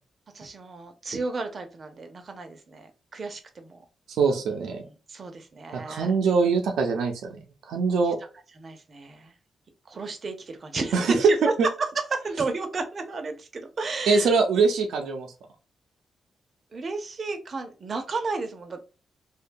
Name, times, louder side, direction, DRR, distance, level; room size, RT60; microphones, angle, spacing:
voice 1, 0.3-3.8 5.1-6.1 8.6-9.3 9.9-11.4 12.1-14.3 16.7-18.8, right 3 dB, 45° right, 6 dB, 0.6 m, -33 dB
voice 2, 4.2-4.8 5.7-7.4 7.7-8.2 10.9-11.3 11.6-11.7 14.1-15.3, right 4 dB, 90° right, 3 dB, 0.5 m, -22 dB
2.6 x 2.2 x 2.5 m, 0.32 s
cardioid pair, 95°, 0 cm